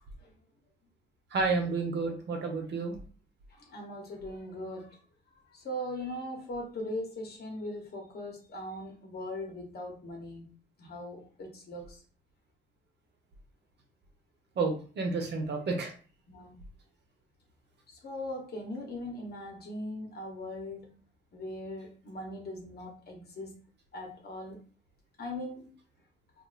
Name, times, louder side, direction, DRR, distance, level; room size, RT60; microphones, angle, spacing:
voice 1, 1.3-3.0 14.6-15.9, right 4 dB, 60° right, 3 dB, 1.0 m, -30 dB
voice 2, 3.5-4.9 5.5-10.5 10.8-12.0 16.3-16.6 18.0-20.9 21.3-23.5 23.9-24.6 25.2-25.7, left 1 dB, 55° left, 2 dB, 1.3 m, -40 dB
2.7 x 2.2 x 4.0 m, 0.39 s
cardioid pair, 90°, 20 cm